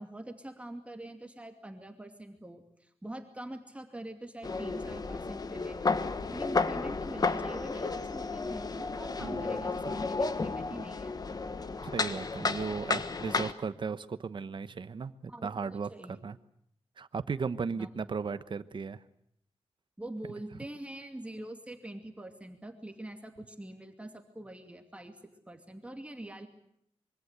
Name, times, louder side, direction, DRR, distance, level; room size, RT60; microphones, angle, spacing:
voice 1, 0.0-5.8 6.3-11.2 15.3-16.2 17.7-17.9 20.0-25.2 25.5-26.5, right 1 dB, 10° right, 5 dB, 2.5 m, -44 dB
sound 1, 4.4-13.5, left 4 dB, 40° left, 1.3 m, -32 dB
voice 2, 9.2-9.6 11.8-16.4 17.0-19.0, right 5 dB, 50° right, 13 dB, 1.1 m, -36 dB
25.5 x 24.0 x 8.2 m, 0.72 s
wide cardioid pair, 120°, 10 cm